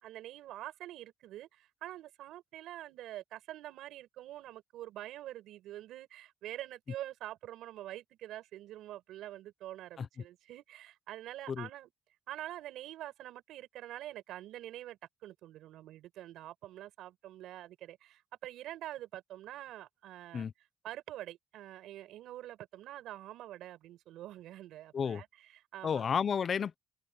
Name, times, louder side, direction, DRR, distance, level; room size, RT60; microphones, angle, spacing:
voice 1, 0.0-11.9 12.3-26.0, right 13 dB, 85° right, 5.3 m, -46 dB
voice 2, 25.8-26.8, left 7 dB, 50° left, 0.8 m, -31 dB
cardioid pair, 90°, 0 cm